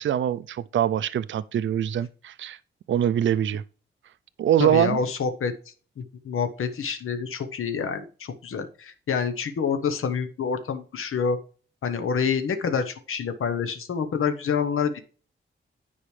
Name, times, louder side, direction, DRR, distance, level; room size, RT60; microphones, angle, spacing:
voice 1, 0.0-2.6 2.9-3.6 4.4-5.0, right 10 dB, 65° right, 0.4 m, -23 dB
voice 2, 4.6-5.5 6.0-11.4 11.8-15.0, left 6 dB, 90° left, 0.9 m, -27 dB
9.9 x 5.0 x 3.2 m
wide cardioid pair, 180°, 21 cm